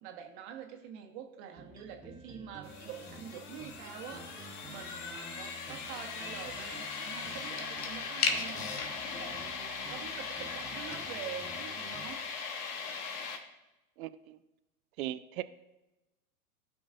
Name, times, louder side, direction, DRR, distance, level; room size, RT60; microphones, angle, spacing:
voice 1, 0.0-12.2, right 8 dB, 45° right, 4 dB, 1.4 m, -46 dB
sound 1, 1.6-12.1, right 3 dB, 10° right, 0.8 m, -51 dB
sound 2, 2.6-13.4, left 5 dB, 80° left, 1.5 m, -38 dB
voice 2, 14.0-14.4 15.0-15.4, right 14 dB, 65° right, 13 dB, 0.6 m, -38 dB
15.5 x 6.1 x 2.5 m, 1.0 s
hypercardioid pair, 115°, 45 cm